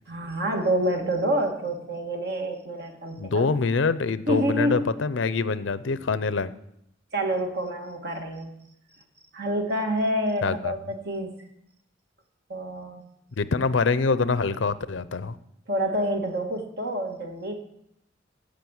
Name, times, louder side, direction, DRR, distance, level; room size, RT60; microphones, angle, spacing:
voice 1, 0.1-3.5 4.3-4.9 7.1-8.5 9.3-11.3 12.5-13.0 15.7-17.6, right 1 dB, 60° right, 3 dB, 1.8 m, -27 dB
voice 2, 3.2-6.5 10.4-10.7 13.4-15.4, left 4 dB, 75° left, 15 dB, 0.6 m, -25 dB
15.5 x 5.2 x 7.9 m, 0.80 s
head